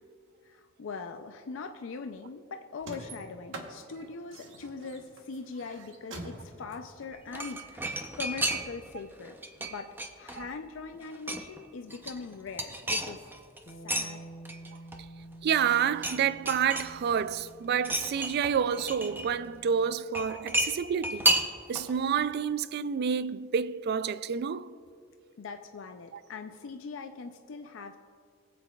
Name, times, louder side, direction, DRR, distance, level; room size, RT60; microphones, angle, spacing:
voice 1, 0.4-13.2 13.7-14.2 25.4-28.0, left 4 dB, 75° left, 0.4 m, -41 dB
sound 1, 2.8-8.0, right 2 dB, 75° right, 1.1 m, -45 dB
sound 2, 7.1-8.9 9.2-10.6 10.9-11.6 11.9-14.1 14.4-15.3 15.6-16.2 16.5-17.3 17.8-19.3 20.1-21.9 22.2-22.3, right 1 dB, 10° right, 0.6 m, -32 dB
Bass guitar, 13.7-19.9, right 1 dB, 50° left, 1.4 m, -50 dB
voice 2, 15.4-21.3 21.7-24.7, right 7 dB, 55° right, 0.3 m, -29 dB
22.5 x 7.7 x 2.3 m
head